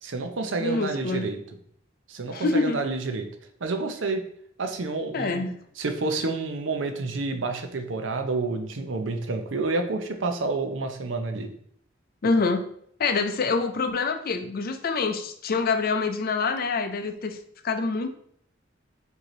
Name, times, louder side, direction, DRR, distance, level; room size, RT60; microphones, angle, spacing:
voice 1, 0.0-1.4 2.1-3.3 3.6-4.2 4.6-5.5 5.8-11.5, right 3 dB, 80° right, 6 dB, 0.7 m, -29 dB
voice 2, 0.6-1.3 2.3-2.8 5.1-5.5 12.2-12.7 13.0-17.4 17.6-18.1, left 4 dB, 50° left, 8 dB, 0.5 m, -26 dB
4.6 x 2.8 x 3.8 m, 0.66 s
head